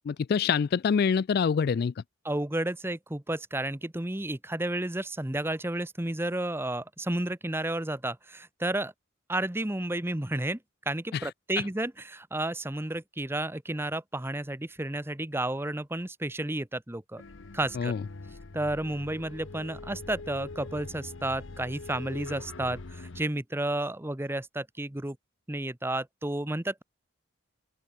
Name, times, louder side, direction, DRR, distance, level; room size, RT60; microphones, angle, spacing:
voice 1, 0.1-1.9 11.1-11.3 17.8-18.0, left 6 dB, 50° left, 0.3 m, -25 dB
voice 2, 2.2-8.9 9.3-10.6 10.9-17.2 17.5-17.9 18.5-25.2 25.5-26.8, right 1 dB, 10° right, 0.9 m, -32 dB
sound 1, 17.2-23.2, left 3 dB, 65° left, 0.9 m, -43 dB
head